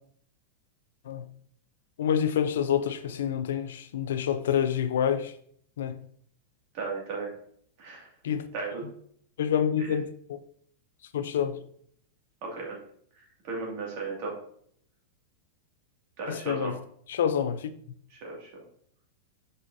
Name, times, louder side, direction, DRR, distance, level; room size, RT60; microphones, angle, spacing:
voice 1, 2.0-5.3 5.8-6.0 8.2-8.5 9.4-10.0 10.3-10.4 11.1-11.6 16.3-16.8 17.1-17.7, left 8 dB, 85° left, 0.6 m, -27 dB
voice 2, 6.7-7.3 7.8-8.1 8.5-8.8 9.8-10.0 12.4-12.8 13.4-14.3 16.2-16.7 18.1-18.5, right 3 dB, 45° right, 2.3 m, -35 dB
6.2 x 5.6 x 2.7 m
supercardioid pair, 165°, 0 cm